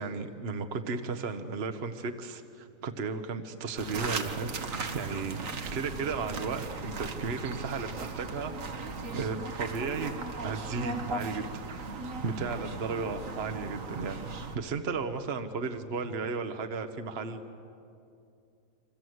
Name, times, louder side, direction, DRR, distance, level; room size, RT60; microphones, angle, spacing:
voice 1, 0.0-10.1 10.4-17.6, right 4 dB, 50° right, 8 dB, 1.3 m, -35 dB
sound 1, 3.8-14.6, right 3 dB, 65° right, 1.8 m, -37 dB
27.5 x 26.0 x 8.0 m, 2.6 s
omnidirectional pair, 1.5 m